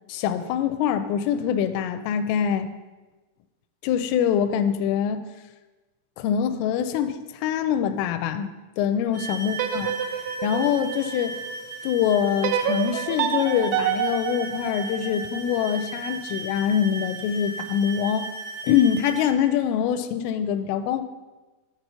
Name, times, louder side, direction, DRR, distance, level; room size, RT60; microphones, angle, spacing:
voice 1, 0.1-2.7 3.8-5.2 6.2-8.5 8.8-10.0 10.4-11.4 11.8-18.3 18.6-21.0, left 9 dB, 85° left, 10 dB, 2.9 m, -24 dB
sound 1, 9.1-19.3, right 3 dB, 65° right, 2.2 m, -36 dB
sound 2, 9.5-11.7 12.4-15.6, right 9 dB, 85° right, 2.8 m, -28 dB
10.5 x 4.3 x 6.8 m, 1.2 s
omnidirectional pair, 6.0 m